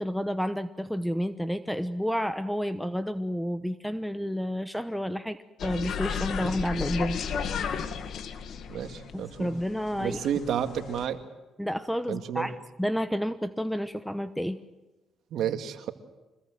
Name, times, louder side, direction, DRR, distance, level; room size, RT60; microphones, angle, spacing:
voice 1, 0.0-7.2 9.1-10.2 11.6-14.6, equal, ahead, 12 dB, 1.0 m, -30 dB
sound 1, 5.6-11.1, left 7 dB, 70° left, 1.9 m, -34 dB
voice 2, 8.7-9.5 10.0-11.2 12.1-12.5 15.3-15.9, right 9 dB, 75° right, 8 dB, 2.0 m, -31 dB
25.5 x 20.5 x 7.8 m, 1.1 s
cardioid pair, 90°, 0 cm